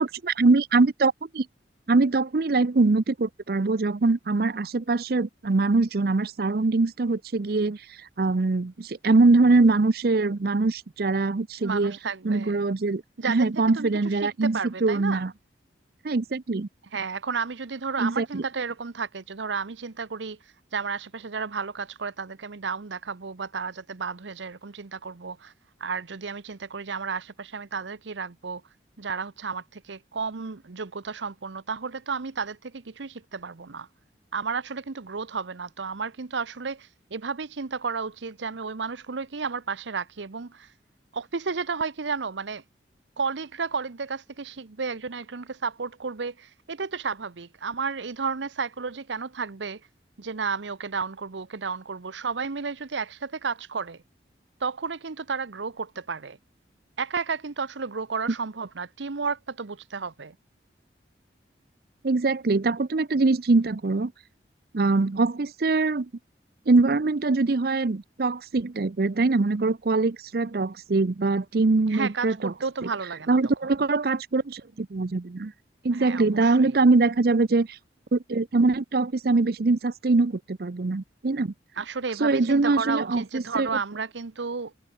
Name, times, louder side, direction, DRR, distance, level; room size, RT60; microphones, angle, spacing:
voice 1, 0.0-1.5 1.9-7.8 8.2-11.9 12.2-15.3 16.0-16.7 18.0-18.4 62.0-64.1 64.7-66.1 66.7-72.5 73.3-75.5 75.8-77.8 78.1-81.5 82.2-83.7, right 3 dB, 55° right, 0.6 m, -23 dB
voice 2, 11.6-12.6 13.2-13.5 13.7-15.3 16.9-20.4 20.7-25.5 25.8-28.6 29.0-33.9 34.3-40.7 41.1-42.6 43.2-49.8 50.2-54.0 54.6-56.4 57.0-60.4 71.9-73.4 75.9-76.8 81.8-84.7, right 5 dB, 85° right, 0.9 m, -32 dB
head